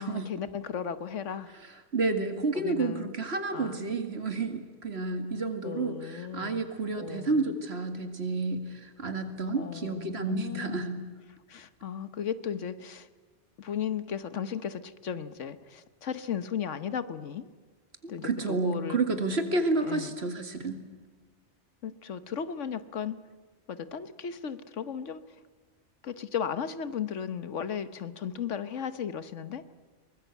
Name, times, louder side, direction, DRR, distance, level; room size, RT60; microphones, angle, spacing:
voice 1, 0.0-1.5 2.5-3.1 3.5-3.9 5.6-6.6 6.9-7.6 9.5-10.8 11.5-13.1 13.6-17.5 18.1-19.0 19.8-20.2 21.8-23.2 23.7-25.2 26.0-29.6, left 7 dB, 80° left, 13 dB, 1.4 m, -35 dB
voice 2, 1.9-11.0 18.0-20.8, right 3 dB, 60° right, 7 dB, 2.4 m, -30 dB
23.0 x 20.0 x 8.3 m, 1.4 s
omnidirectional pair, 1.2 m